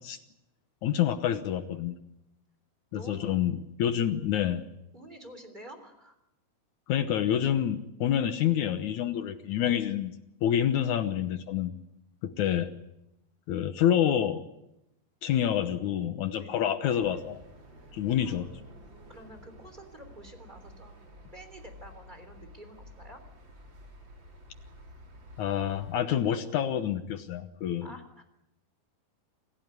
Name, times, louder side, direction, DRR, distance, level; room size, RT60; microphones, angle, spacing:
voice 1, 0.8-2.0 2.9-4.6 6.9-10.1 10.4-11.7 12.2-12.7 13.5-14.4 15.2-17.4 17.9-18.5 25.4-27.9, left 10 dB, 70° left, 10 dB, 1.9 m, -27 dB
voice 2, 2.9-3.3 4.0-4.1 4.9-6.2 16.4-16.6 18.2-18.6 19.1-21.0 21.3-23.2 27.8-28.2, right 1 dB, 10° right, 7 dB, 3.0 m, -49 dB
sound 1, 17.0-25.9, equal, 30° right, 3.6 m, -51 dB
27.5 x 16.0 x 9.7 m, 0.86 s
omnidirectional pair, 4.6 m